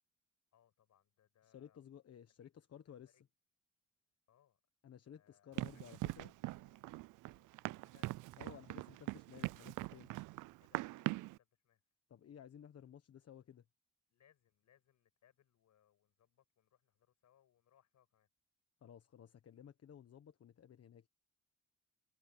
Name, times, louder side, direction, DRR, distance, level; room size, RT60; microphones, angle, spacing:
voice 1, 0.5-1.9 2.4-2.5 3.1-3.3 4.3-4.6 5.0-7.5 7.8-8.1 10.6-11.8 14.1-18.3, left 10 dB, 70° left, 7.7 m, -74 dB
voice 2, 1.4-3.3 4.8-6.3 8.4-10.1 12.1-13.7 18.8-21.1, left 9 dB, 55° left, 1.4 m, -56 dB
Run, 5.6-11.4, right 19 dB, 85° right, 0.5 m, -42 dB
cardioid pair, 90°, 30 cm